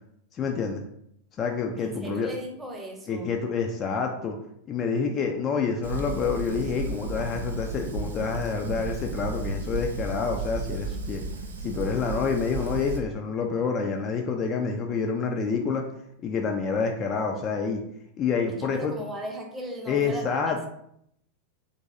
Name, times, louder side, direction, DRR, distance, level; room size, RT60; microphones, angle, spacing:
voice 1, 0.3-0.8 1.4-2.3 3.1-4.4 4.7-11.2 11.6-15.8 16.2-17.8 18.2-18.9 19.9-20.7, left 5 dB, 30° left, 2 dB, 0.3 m, -28 dB
voice 2, 1.8-3.3 18.6-20.7, right 1 dB, 10° right, 1 dB, 0.6 m, -37 dB
Fire, 5.8-13.0, right 3 dB, 70° right, 0.4 m, -33 dB
3.0 x 2.6 x 2.5 m, 0.74 s
figure-of-eight pair, 90°, 0 cm